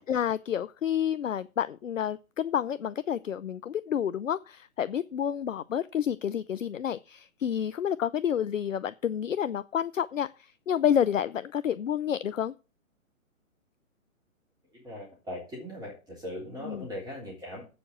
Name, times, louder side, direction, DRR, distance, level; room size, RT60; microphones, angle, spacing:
voice 1, 0.0-12.5 16.7-16.8, left 9 dB, 65° left, 0.7 m, -29 dB
voice 2, 14.7-17.7, left 1 dB, 10° right, 3.4 m, -39 dB
8.3 x 7.1 x 7.6 m
figure-of-eight pair, 130°, 41 cm